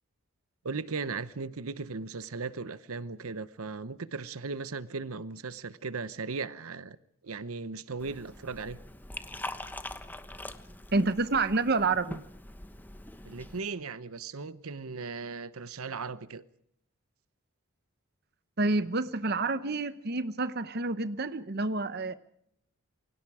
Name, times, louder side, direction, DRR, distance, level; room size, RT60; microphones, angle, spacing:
voice 1, 0.6-7.0 7.2-8.8 13.2-16.4, right 4 dB, 75° right, 0.9 m, -37 dB
Liquid, 8.0-13.6, left 1 dB, 10° left, 1.0 m, -43 dB
voice 2, 10.9-12.2 18.6-22.1, right 3 dB, 45° right, 0.9 m, -28 dB
28.0 x 23.5 x 4.9 m
head